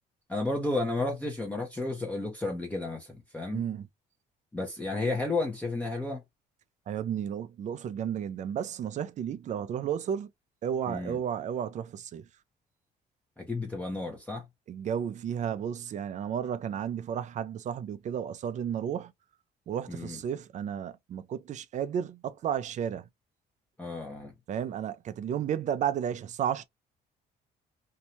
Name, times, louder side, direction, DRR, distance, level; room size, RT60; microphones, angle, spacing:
voice 1, 0.3-3.6 4.5-6.2 10.9-11.2 13.4-14.4 19.9-20.2 23.8-24.3, left 2 dB, 10° left, 0.8 m, -32 dB
voice 2, 3.5-3.9 6.9-10.3 10.6-12.3 14.7-19.1 19.7-23.1 24.5-26.6, right 9 dB, 45° right, 0.4 m, -33 dB
2.7 x 2.3 x 2.9 m
cardioid pair, 110°, 17 cm